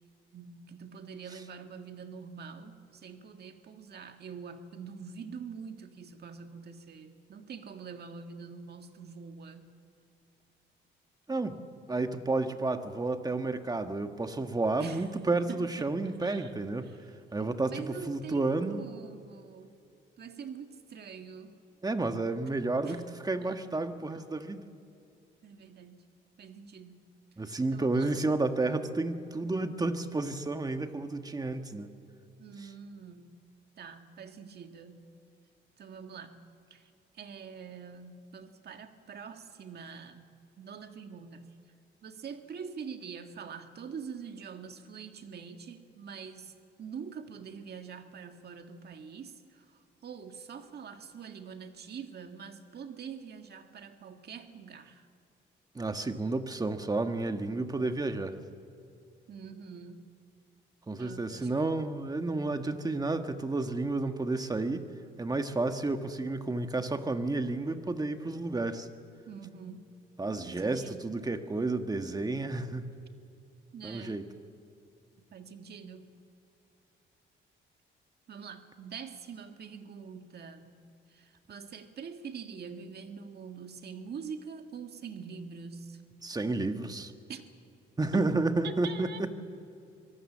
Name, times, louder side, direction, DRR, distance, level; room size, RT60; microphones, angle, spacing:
voice 1, 0.3-9.8 14.8-15.1 15.5-16.5 16.8-17.0 17.4-19.8 20.2-21.6 22.8-23.0 23.4-23.7 24.1-24.2 25.4-26.0 26.4-27.0 27.4-28.2 32.4-33.4 33.8-35.1 35.8-41.6 42.0-55.1 59.3-60.1 61.0-61.5 69.3-69.9 70.4-71.1 73.7-74.3 75.3-76.1 78.3-80.8 81.1-86.0 87.3-87.5 88.1-88.3 88.6-89.3, right 6 dB, 55° right, 6 dB, 1.8 m, -45 dB
voice 2, 11.9-16.9 17.3-18.8 21.8-24.7 27.4-31.9 55.7-58.3 60.9-64.9 65.2-68.9 70.2-72.9 73.8-74.2 86.2-87.1 88.0-89.3, right 2 dB, 20° right, 7 dB, 1.5 m, -31 dB
24.5 x 18.0 x 7.4 m, 2.6 s
cardioid pair, 90°, 20 cm